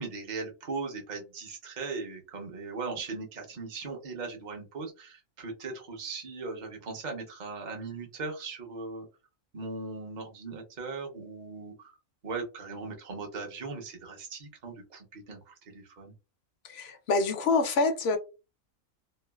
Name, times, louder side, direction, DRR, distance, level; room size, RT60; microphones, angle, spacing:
voice 1, 0.0-9.1 9.5-12.0 12.2-16.1, right 4 dB, 40° right, 0.8 m, -39 dB
voice 2, 16.6-18.2, left 3 dB, 60° left, 0.7 m, -26 dB
3.0 x 2.4 x 2.3 m
omnidirectional pair, 1.5 m